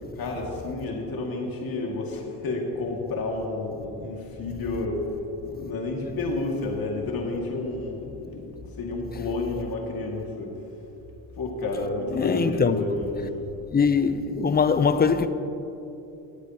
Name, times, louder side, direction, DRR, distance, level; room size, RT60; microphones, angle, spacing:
voice 1, 0.1-5.1 5.4-8.5 8.8-10.5 11.4-13.5, left 2 dB, 55° left, 2.2 m, -30 dB
voice 2, 12.2-12.8 13.7-15.3, left 5 dB, 25° left, 0.5 m, -22 dB
21.5 x 8.1 x 2.9 m
cardioid pair, 85°, 41 cm